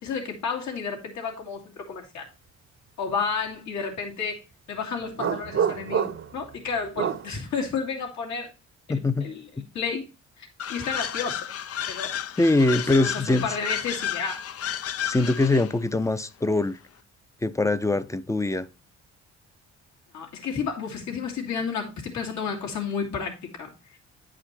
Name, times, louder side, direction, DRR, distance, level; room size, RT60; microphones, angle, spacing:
voice 1, 0.0-2.3 3.0-4.4 4.7-8.5 8.9-10.0 10.4-11.5 11.9-12.1 12.8-14.4 20.1-23.7, left 5 dB, 70° left, 2.4 m, -31 dB
sound 1, 5.2-6.4 7.0-7.3, right 7 dB, 45° right, 0.8 m, -27 dB
voice 2, 8.9-9.3 12.4-13.5 15.0-16.8 17.4-18.7, left 2 dB, 10° left, 0.6 m, -23 dB
sound 2, 10.6-15.8, left 10 dB, 50° left, 0.5 m, -32 dB
9.6 x 5.0 x 4.3 m
cardioid pair, 90°, 30 cm